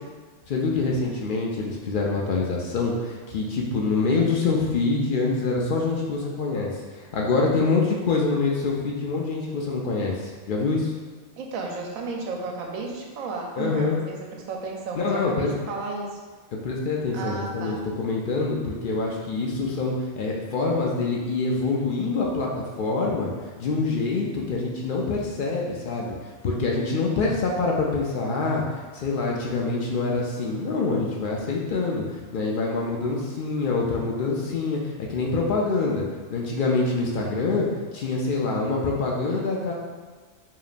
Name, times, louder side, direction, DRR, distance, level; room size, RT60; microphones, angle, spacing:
voice 1, 0.5-10.9 13.6-14.0 14.9-15.5 16.5-23.3 23.6-26.2 26.4-28.6 28.9-36.0 36.3-37.7 37.9-39.7, left 3 dB, 70° left, -2 dB, 0.5 m, -25 dB
voice 2, 11.4-16.2 17.1-17.8, right 3 dB, 85° right, 0 dB, 1.1 m, -33 dB
5.0 x 2.9 x 2.5 m, 1.4 s
omnidirectional pair, 1.4 m